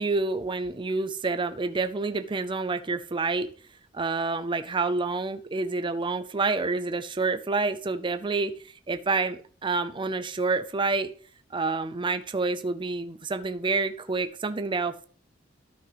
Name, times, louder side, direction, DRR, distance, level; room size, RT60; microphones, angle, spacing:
voice 1, 0.0-3.5 3.9-8.5 8.9-11.1 11.5-15.0, right 3 dB, 25° right, 10 dB, 0.5 m, -28 dB
13.0 x 5.6 x 3.1 m, 0.43 s
head